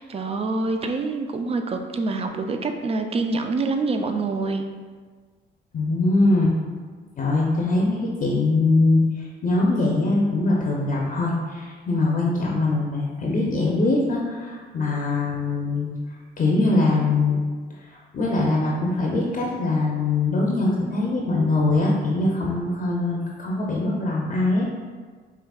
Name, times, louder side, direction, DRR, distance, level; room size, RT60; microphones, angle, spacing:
voice 1, 0.0-4.6, right 3 dB, 30° right, 6 dB, 0.4 m, -26 dB
voice 2, 5.7-6.6 7.2-15.9 16.4-17.4 17.9-24.9, left 2 dB, 40° left, -3 dB, 0.6 m, -22 dB
4.9 x 2.9 x 2.3 m, 1.5 s
cardioid pair, 90°, 20 cm